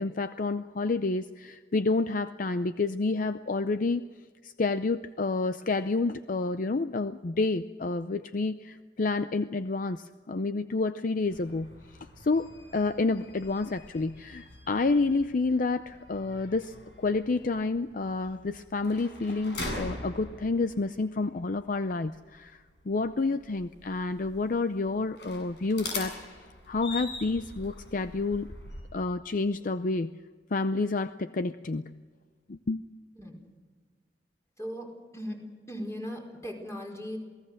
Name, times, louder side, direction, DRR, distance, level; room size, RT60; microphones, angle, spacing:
voice 1, 0.0-4.0 4.4-11.7 12.2-26.2 26.7-28.5 28.9-30.1 30.5-32.0 32.5-32.8, left 3 dB, 50° left, 11 dB, 0.6 m, -29 dB
sound 1, 11.3-28.8, left 2 dB, 75° left, 7.6 m, -43 dB
voice 2, 34.6-34.9 35.1-35.4 35.7-37.2, equal, 15° left, 1 dB, 5.0 m, -37 dB
28.0 x 18.5 x 6.5 m, 1.5 s
head